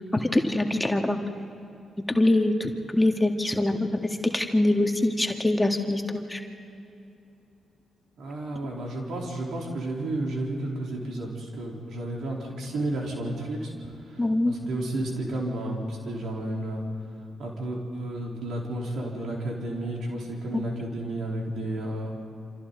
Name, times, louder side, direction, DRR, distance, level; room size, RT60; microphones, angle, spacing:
voice 1, 0.1-1.2 2.1-6.4 14.2-14.5 20.5-20.6, left 1 dB, 15° left, 3 dB, 2.0 m, -24 dB
voice 2, 8.2-13.7 14.0-16.9 17.4-22.2, right 1 dB, 65° right, -1 dB, 4.1 m, -32 dB
28.0 x 26.0 x 4.1 m, 2.7 s
hypercardioid pair, 40°, 0 cm